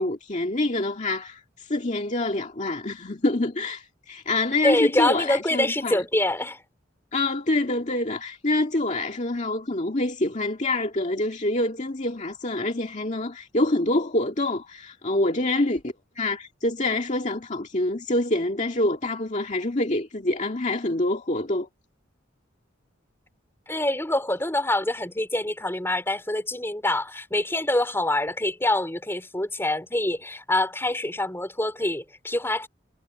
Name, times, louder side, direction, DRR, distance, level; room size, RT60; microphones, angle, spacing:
voice 1, 0.0-6.0 7.1-21.7, left 2 dB, 40° left, 2.0 m, -26 dB
voice 2, 4.6-6.6 23.7-32.7, left 1 dB, 15° left, 4.0 m, -25 dB
head